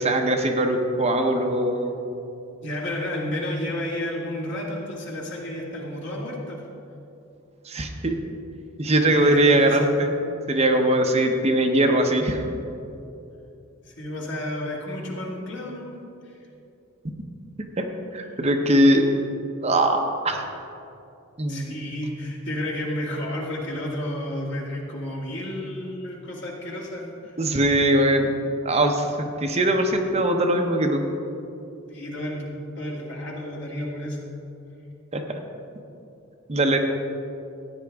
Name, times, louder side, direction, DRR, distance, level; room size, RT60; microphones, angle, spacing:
voice 1, 0.0-1.9 7.7-8.2 8.8-10.1 10.5-12.4 17.8-17.9 18.1-19.1 19.6-20.0 20.2-20.4 21.4-21.9 27.4-28.3 28.6-31.0 35.1-35.4 36.5-36.8, right 1 dB, 30° right, 4 dB, 0.7 m, -21 dB
voice 2, 2.6-6.6 9.1-9.8 13.9-16.0 21.5-27.4 31.9-34.3, left 1 dB, 60° left, -3 dB, 2.0 m, -31 dB
14.5 x 9.4 x 3.5 m, 2.7 s
head